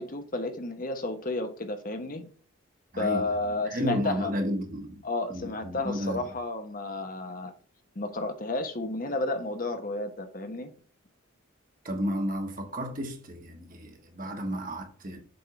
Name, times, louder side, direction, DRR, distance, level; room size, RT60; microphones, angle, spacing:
voice 1, 0.0-2.3 3.0-4.3 5.0-7.5 8.0-10.7, left 2 dB, 40° left, 1.0 m, -32 dB
voice 2, 2.9-5.0 5.3-6.3 11.8-15.2, equal, 40° right, 1.5 m, -32 dB
7.8 x 3.6 x 5.9 m
head